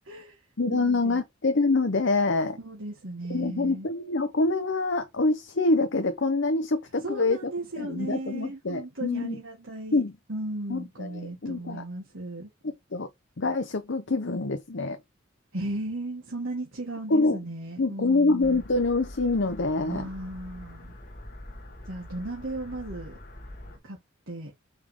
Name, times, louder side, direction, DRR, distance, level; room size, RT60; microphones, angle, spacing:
voice 1, 0.1-0.4 0.7-1.2 2.6-3.9 7.0-10.0 10.3-12.5 15.5-18.6 19.8-20.9 21.8-23.2 23.8-24.0 24.3-24.5, right 1 dB, 65° right, 1.7 m, -36 dB
voice 2, 0.6-2.6 3.3-7.5 7.8-9.4 9.9-10.1 10.7-11.8 12.6-13.1 13.4-15.0 17.1-17.4 17.8-20.1, left 3 dB, 60° left, 0.8 m, -26 dB
sound 1, 18.4-23.8, left 1 dB, 45° left, 2.2 m, -44 dB
5.8 x 3.5 x 4.8 m
head